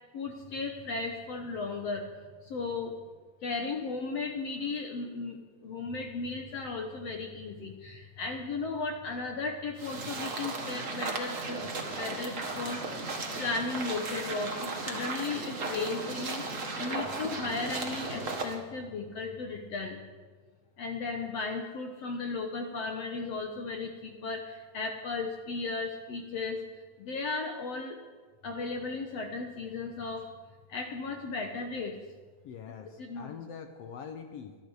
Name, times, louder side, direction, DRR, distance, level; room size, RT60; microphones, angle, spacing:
voice 1, 0.1-2.1 2.5-3.0 3.4-11.6 11.9-12.8 13.4-16.4 16.8-20.0 20.8-26.6 27.0-28.0 28.4-30.3 30.7-31.9 33.0-33.3, left 3 dB, 65° left, 3 dB, 1.6 m, -35 dB
sound 1, 9.8-18.6, right 3 dB, 70° right, 0.7 m, -36 dB
voice 2, 32.4-34.6, left 7 dB, 85° left, 6 dB, 1.4 m, -44 dB
25.5 x 11.0 x 4.9 m, 1.4 s
omnidirectional pair, 4.2 m